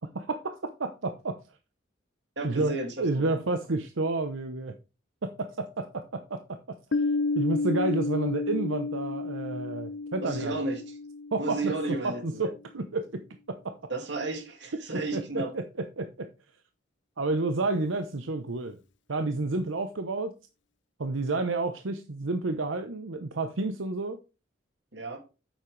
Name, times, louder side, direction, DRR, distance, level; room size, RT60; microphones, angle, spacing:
voice 1, 0.1-1.4 2.4-4.7 5.2-7.0 7.3-10.5 11.3-13.2 13.5-13.8 15.1-16.3 17.2-18.8 19.1-20.3 21.0-24.2, right 3 dB, 85° right, 0.8 m, -30 dB
voice 2, 2.4-3.4 10.2-11.0 11.4-12.5 13.9-15.5 24.9-25.2, right 2 dB, 65° right, 2.3 m, -33 dB
Piano, 6.9-12.3, left 3 dB, 65° left, 0.7 m, -31 dB
8.9 x 7.3 x 3.2 m
head